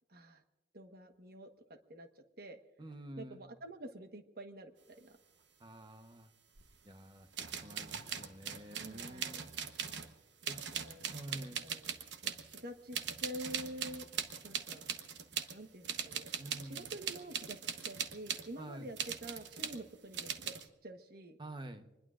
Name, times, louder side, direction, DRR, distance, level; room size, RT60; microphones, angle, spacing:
voice 1, 0.1-0.4 0.7-1.5 1.9-2.6 3.2-5.2 8.7-9.4 10.7-11.0 11.3-11.9 12.2-14.1 14.4-15.1 15.5-16.3 16.6-20.5 20.8-21.4, right 1 dB, 55° right, 7 dB, 1.2 m, -48 dB
voice 2, 2.8-3.4 5.6-6.3 6.8-9.5 10.5-10.6 11.1-11.6 16.4-16.9 18.6-18.9 21.4-21.9, right 1 dB, 25° right, 8 dB, 1.0 m, -48 dB
sound 1, 6.6-6.7 7.3-10.1 10.4-12.6 12.9-15.6 15.8-18.5 19.0-19.8 20.1-20.7, right 8 dB, 80° right, 1.0 m, -40 dB
25.0 x 20.5 x 2.5 m, 1.2 s
head